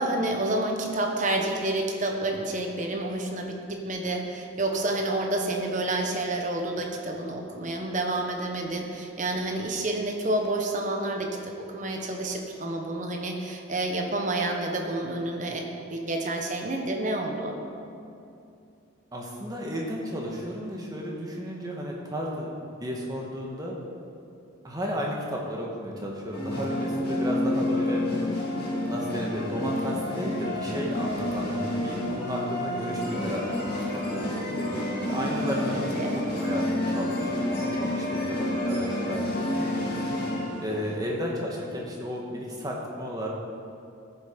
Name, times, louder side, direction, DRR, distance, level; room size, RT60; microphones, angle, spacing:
voice 1, 0.0-15.7 15.9-17.6 35.7-36.1, right 2 dB, 35° right, 2 dB, 1.1 m, -29 dB
voice 2, 19.1-22.5 22.8-23.8 24.6-28.0 28.8-33.5 34.1-34.3 34.6-35.8 36.1-39.3 39.6-39.7 40.6-43.3, equal, 20° right, -2 dB, 1.5 m, -33 dB
sound 1, 26.3-41.0, left 1 dB, 45° left, 2.3 m, -29 dB
14.0 x 7.0 x 5.2 m, 2.6 s
head